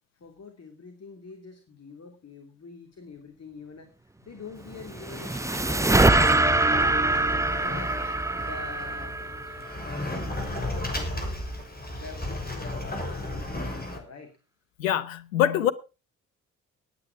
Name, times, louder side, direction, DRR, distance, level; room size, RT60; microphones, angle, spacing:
voice 1, 0.2-3.9 4.3-6.2 6.7-7.9 8.3-9.2 9.8-11.4 11.9-14.4, left 4 dB, 40° left, 2.9 m, -45 dB
Sliding door, 4.6-14.0, left 1 dB, 25° left, 6.4 m, -34 dB
sound 1, 4.7-10.1, right 2 dB, 10° right, 0.9 m, -24 dB
voice 2, 14.8-15.7, left 10 dB, 80° left, 0.9 m, -24 dB
18.5 x 9.3 x 4.7 m
figure-of-eight pair, 40°, 39 cm